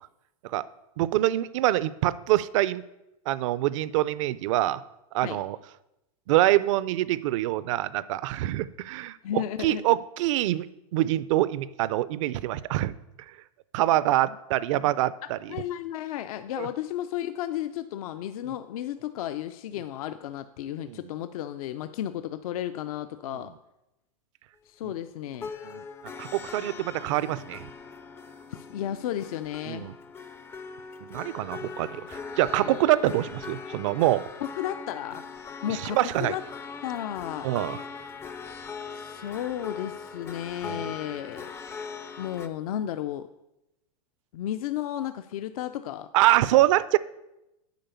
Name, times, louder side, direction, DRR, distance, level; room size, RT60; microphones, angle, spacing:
voice 1, 1.0-2.8 3.3-4.8 5.1-5.6 6.3-12.9 13.7-15.6 16.6-16.7 20.9-21.0 23.4-23.5 24.8-24.9 25.6-25.8 26.2-27.7 29.7-29.9 31.1-34.3 35.7-36.3 37.4-37.8 40.6-40.9 46.1-47.0, right 15 dB, 55° right, 18 dB, 0.5 m, -25 dB
voice 2, 9.2-9.8 14.8-14.9 15.5-23.5 24.7-25.5 28.5-29.9 32.6-32.8 34.4-36.4 36.8-37.5 38.9-41.5 42.2-43.3 44.3-46.1, left 11 dB, 70° left, 10 dB, 0.5 m, -33 dB
sound 1, 25.3-42.5, left 5 dB, 10° left, 0.4 m, -40 dB
9.1 x 4.9 x 6.9 m, 0.90 s
supercardioid pair, 150°, 19 cm